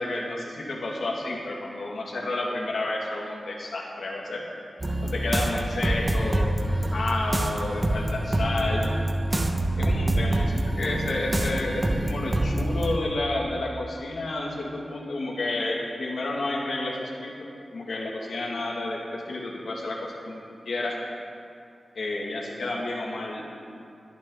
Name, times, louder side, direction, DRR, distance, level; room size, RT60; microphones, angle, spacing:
voice 1, 0.0-4.5 5.0-9.0 9.8-21.0 21.9-23.4, left 2 dB, 80° left, -2 dB, 2.4 m, -31 dB
sound 1, 4.8-13.0, right 1 dB, 25° right, 1.1 m, -26 dB
21.0 x 10.5 x 4.0 m, 2.5 s
wide cardioid pair, 75°, 0 cm